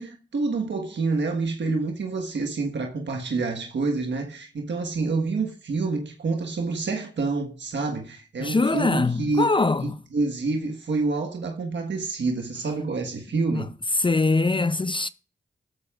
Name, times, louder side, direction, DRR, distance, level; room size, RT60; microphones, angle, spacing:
voice 1, 0.0-9.5 9.8-13.7, right 3 dB, 70° right, 1.5 m, -27 dB
voice 2, 8.4-10.0 13.5-13.7 14.0-15.1, left 3 dB, 25° left, 0.5 m, -23 dB
13.0 x 13.0 x 2.5 m
cardioid pair, 45°, 19 cm